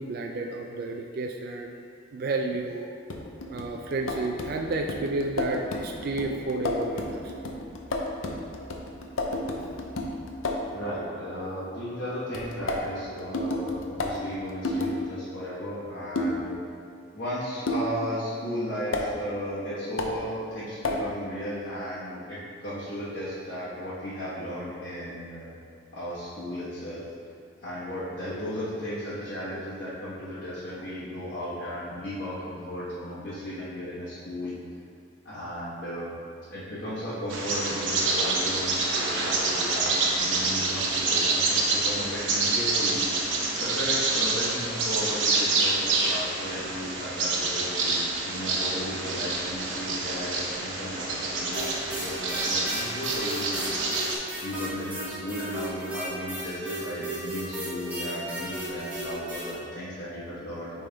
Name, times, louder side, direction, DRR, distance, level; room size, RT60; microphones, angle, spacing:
voice 1, 0.0-1.8 2.1-2.9 3.5-7.3, right 2 dB, 50° right, 2 dB, 0.3 m, -31 dB
sound 1, 3.1-10.7 12.3-15.0 16.1-16.4 17.7-18.0 18.9-19.1 20.0-20.2 20.8-21.1, left 2 dB, 85° left, 0.6 m, -32 dB
voice 2, 10.7-16.6 17.1-25.6 25.9-27.0 27.6-34.6 35.2-36.1 36.5-43.1 43.6-54.1 54.4-60.8, equal, 50° left, -13 dB, 1.3 m, -35 dB
Bird vocalization bird call bird song, 37.3-54.1, right 3 dB, 70° right, 0.9 m, -27 dB
sound 2, 51.5-59.5, right 1 dB, 10° right, 1.4 m, -35 dB
8.8 x 3.5 x 3.4 m, 2.4 s
head